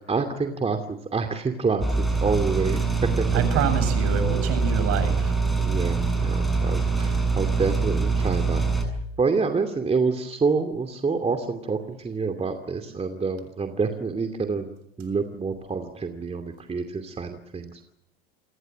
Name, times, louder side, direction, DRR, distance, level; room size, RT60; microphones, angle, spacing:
voice 1, 0.1-2.8 3.2-3.3 5.6-8.6 9.2-14.7 15.0-17.9, right 4 dB, 20° right, 6 dB, 2.6 m, -27 dB
sound 1, 1.8-8.8, right 4 dB, ahead, 7.5 m, -24 dB
voice 2, 3.3-5.3, right 7 dB, 50° right, 10 dB, 7.7 m, -26 dB
28.5 x 21.0 x 7.6 m, 0.81 s
hypercardioid pair, 90°, 31 cm